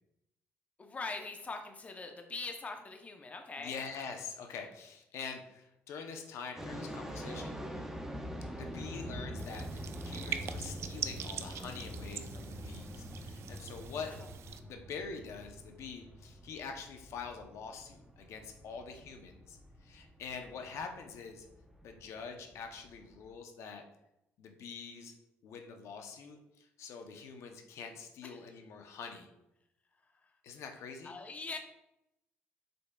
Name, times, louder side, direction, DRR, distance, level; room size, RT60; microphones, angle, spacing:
voice 1, 0.8-3.8 14.1-14.3 28.2-28.4 30.2-30.3 31.0-31.6, left 3 dB, 30° left, 4 dB, 0.7 m, -42 dB
voice 2, 3.6-7.6 8.5-14.2 14.6-21.5 21.8-23.8 24.4-25.2 25.4-29.3 30.4-31.2, left 5 dB, 75° left, 4 dB, 0.6 m, -45 dB
sound 1, 6.6-23.3, equal, 10° right, 0.7 m, -45 dB
sound 2, 9.4-14.6, right 8 dB, 65° right, 0.4 m, -43 dB
5.1 x 4.6 x 2.2 m, 0.86 s
cardioid pair, 90°, 5 cm